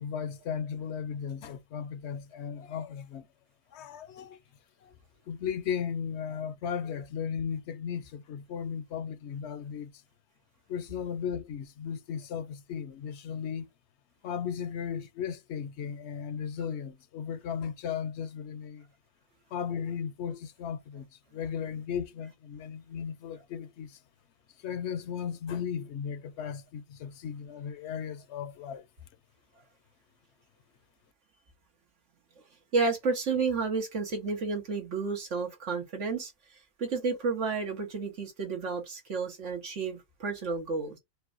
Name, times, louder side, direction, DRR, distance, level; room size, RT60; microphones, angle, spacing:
voice 1, 0.0-3.3 3.7-4.4 4.8-5.0 5.3-9.9 10.7-13.7 14.2-18.9 19.5-24.0 24.6-28.9, left 7 dB, 70° left, 0.8 m, -36 dB
voice 2, 32.7-36.3 36.8-41.0, right 4 dB, 90° right, 1.7 m, -31 dB
6.5 x 2.2 x 2.5 m
omnidirectional pair, 1.2 m